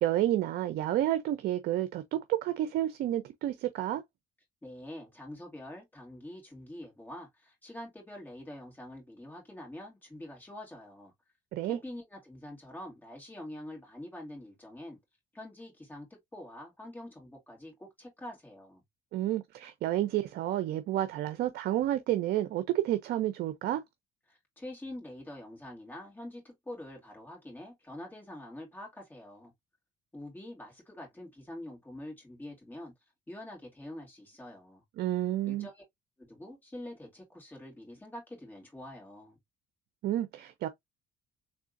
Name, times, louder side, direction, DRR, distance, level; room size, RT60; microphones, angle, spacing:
voice 1, 0.0-4.0 11.5-11.8 19.1-23.8 35.0-35.7 40.0-40.7, right 13 dB, 70° right, 0.6 m, -30 dB
voice 2, 4.6-11.1 11.6-15.0 15.3-18.8 24.3-29.5 30.1-32.9 33.3-34.8 35.4-35.8 36.2-39.4, left 1 dB, 10° left, 2.7 m, -45 dB
3.6 x 3.5 x 2.5 m
cardioid pair, 110°, 17 cm